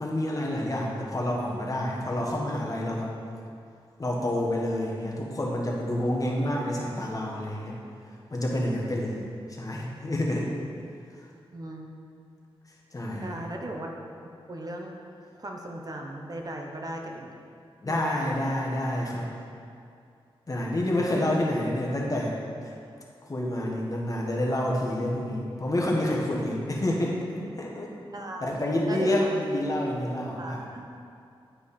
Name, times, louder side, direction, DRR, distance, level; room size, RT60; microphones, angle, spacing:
voice 1, 0.0-3.1 4.0-7.8 8.3-10.5 12.9-13.4 17.8-19.3 20.5-22.3 22.6-22.7 23.2-27.9 28.4-30.6, left 1 dB, 35° left, -2 dB, 1.3 m, -28 dB
voice 2, 11.5-11.9 13.2-14.1 14.5-15.0 15.4-17.3 17.9-18.1 28.1-28.6 28.9-29.4 30.4-30.8, right 1 dB, 40° right, 1 dB, 0.8 m, -37 dB
10.0 x 4.8 x 4.2 m, 2.4 s
wide cardioid pair, 85°, 10 cm